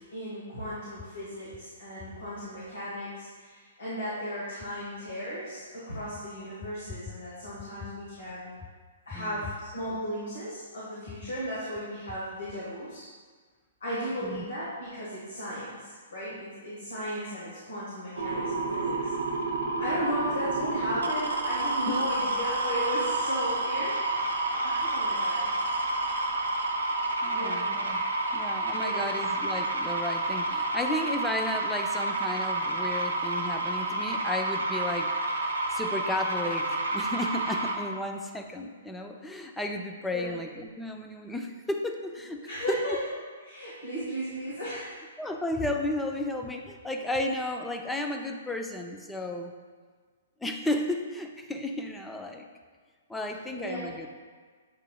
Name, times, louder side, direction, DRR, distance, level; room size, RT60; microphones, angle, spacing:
voice 1, 0.0-8.5 9.0-13.0 13.8-19.1 19.8-24.0 24.5-25.5 27.3-27.7 28.8-29.1 40.1-40.3 42.4-43.0 43.4-45.0 53.5-53.9, equal, 80° left, -9 dB, 1.4 m, -35 dB
voice 2, 9.1-9.5 14.2-14.4 21.9-22.0 27.2-28.0 28.3-43.0 45.2-49.5 50.4-52.5 53.1-54.1, left 1 dB, 5° left, 3 dB, 0.4 m, -33 dB
sound 1, 18.2-37.8, right 2 dB, 80° right, 0.6 m, -29 dB
7.5 x 2.7 x 2.3 m, 1.5 s
hypercardioid pair, 125°, 0 cm